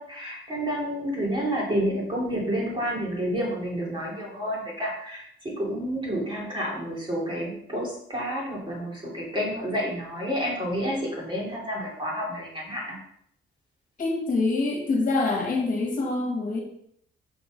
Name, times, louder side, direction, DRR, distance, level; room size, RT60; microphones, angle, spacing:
voice 1, 0.0-13.0, equal, 25° right, -4 dB, 3.1 m, -29 dB
voice 2, 14.0-16.6, left 3 dB, 40° left, 1 dB, 1.8 m, -25 dB
6.2 x 5.8 x 5.2 m, 0.69 s
cardioid pair, 145°, 20 cm